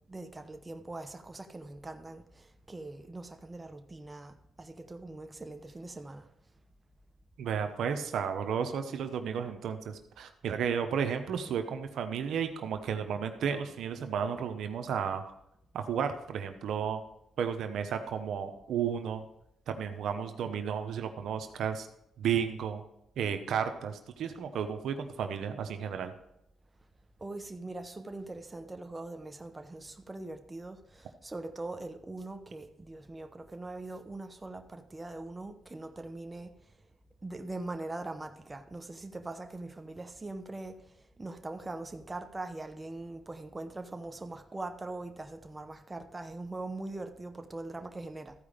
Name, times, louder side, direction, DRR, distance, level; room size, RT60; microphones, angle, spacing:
voice 1, 0.1-2.2 2.7-4.3 4.6-6.2 27.2-30.8 31.2-36.5 37.2-40.7 41.2-48.3, right 2 dB, 20° right, 0.9 m, -41 dB
voice 2, 7.4-15.2 15.7-17.0 17.4-19.2 19.7-21.9 22.2-22.8 23.2-26.1, right 7 dB, 75° right, 0.9 m, -33 dB
14.0 x 4.9 x 5.1 m
cardioid pair, 75°, 0 cm